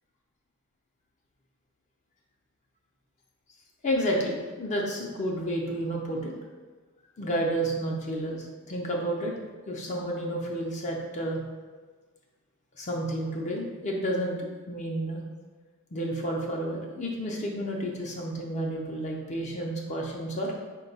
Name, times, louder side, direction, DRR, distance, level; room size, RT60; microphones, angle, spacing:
voice 1, 3.8-6.3 7.2-9.3 9.7-11.4 12.8-15.2 15.9-20.5, right 1 dB, 35° left, -1 dB, 0.5 m, -31 dB
4.6 x 2.2 x 4.0 m, 1.4 s
head